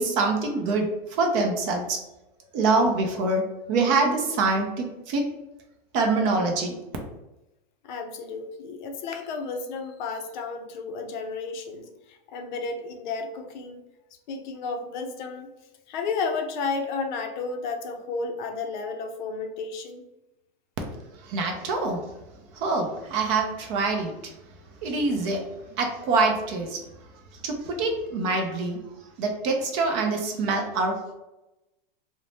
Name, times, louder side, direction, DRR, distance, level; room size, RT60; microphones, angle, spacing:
voice 1, 0.0-2.0 2.5-3.4 3.7-5.2 5.9-6.8 21.2-22.0 22.5-24.1 24.8-25.4 25.8-26.8 27.4-28.8 29.2-31.1, right 3 dB, 35° right, 3 dB, 0.5 m, -25 dB
voice 2, 7.8-13.8 14.3-15.5 15.9-20.0, left 4 dB, 55° left, 5 dB, 0.5 m, -32 dB
2.5 x 2.1 x 3.1 m, 0.97 s
hypercardioid pair, 140°, 29 cm